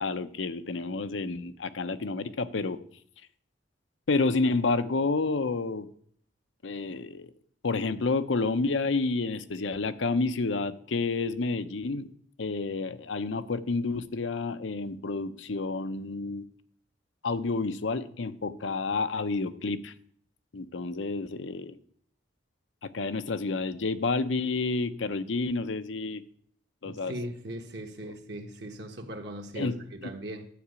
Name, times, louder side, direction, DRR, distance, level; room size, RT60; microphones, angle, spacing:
voice 1, 0.0-2.8 4.1-5.9 6.6-7.3 7.6-12.1 12.4-16.4 17.2-19.9 20.5-21.8 22.8-26.2 26.8-27.1 28.0-28.1 29.6-29.7, left 3 dB, 80° left, 0.7 m, -29 dB
voice 2, 26.8-30.5, right 1 dB, 60° right, 1.4 m, -39 dB
12.0 x 4.9 x 8.2 m
head